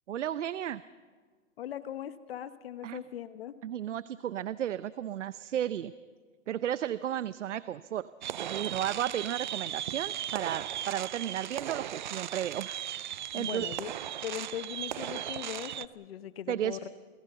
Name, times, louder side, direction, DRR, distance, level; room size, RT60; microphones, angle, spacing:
voice 1, 0.1-0.8 2.8-3.0 3.6-5.9 6.5-8.1 8.4-12.8 13.3-13.7 16.5-16.8, right 10 dB, 65° right, 15 dB, 0.8 m, -33 dB
voice 2, 1.6-3.5 13.3-16.9, left 10 dB, 50° left, 12 dB, 1.2 m, -40 dB
sound 1, 8.2-15.9, right 11 dB, 40° right, 0.5 m, -37 dB
29.0 x 18.5 x 5.8 m, 1.5 s
hypercardioid pair, 155°, 39 cm